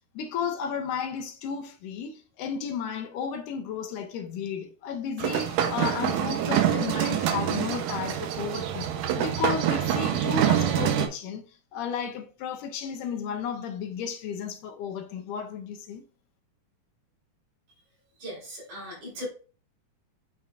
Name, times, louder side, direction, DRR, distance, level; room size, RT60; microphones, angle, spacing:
voice 1, 0.1-11.4 11.7-16.0, left 7 dB, 80° left, 2.4 m, -33 dB
sound 1, 5.2-11.1, right 10 dB, 80° right, 2.3 m, -26 dB
voice 2, 18.2-19.3, equal, 65° right, 5.0 m, -38 dB
8.9 x 4.3 x 2.4 m
omnidirectional pair, 3.6 m